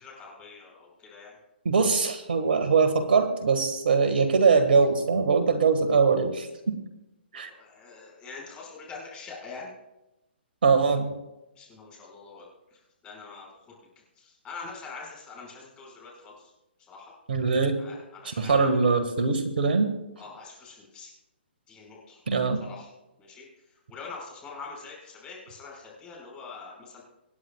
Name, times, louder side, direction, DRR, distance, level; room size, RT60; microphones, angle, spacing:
voice 1, 0.0-1.4 7.3-9.7 11.5-13.7 14.2-16.5 16.9-17.1 17.8-18.8 20.2-21.1 21.7-22.2 22.6-22.9 23.2-27.0, left 4 dB, 20° left, -2 dB, 5.5 m, -44 dB
voice 2, 1.7-6.8 7.3-7.5 10.6-11.1 17.3-17.8 18.3-19.9 22.3-22.6, right 5 dB, 60° right, 8 dB, 1.7 m, -22 dB
26.0 x 9.5 x 2.4 m, 0.97 s
figure-of-eight pair, 135°, 6 cm